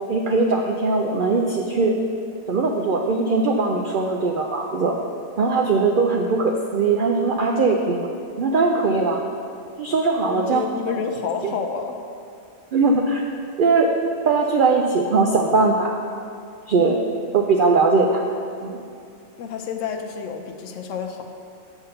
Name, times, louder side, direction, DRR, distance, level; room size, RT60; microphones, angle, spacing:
voice 1, 0.1-2.0 2.5-4.9 5.4-8.1 8.4-9.2 9.8-10.6 11.4-11.5 12.7-13.2 13.6-13.9 14.2-15.9 16.7-17.0 17.3-18.2 18.6-18.8, right 3 dB, 65° right, 2 dB, 0.5 m, -20 dB
voice 2, 10.3-12.0 19.4-21.2, left 6 dB, 70° left, 5 dB, 1.0 m, -29 dB
7.9 x 3.7 x 6.7 m, 2.4 s
omnidirectional pair, 1.4 m